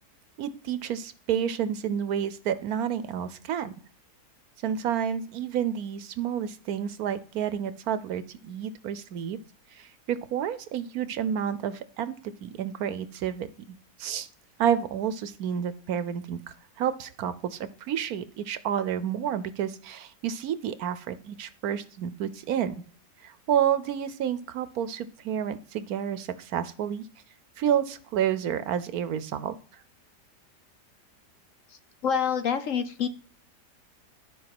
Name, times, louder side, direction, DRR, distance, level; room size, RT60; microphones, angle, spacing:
voice 1, 0.4-3.7 4.6-9.4 9.7-14.3 14.6-16.4 16.8-22.8 23.2-27.0 27.6-29.6, right 9 dB, 70° right, 14 dB, 1.1 m, -30 dB
voice 2, 32.0-33.1, left 7 dB, 60° left, 10 dB, 1.0 m, -26 dB
12.5 x 5.1 x 6.0 m, 0.43 s
omnidirectional pair, 1.7 m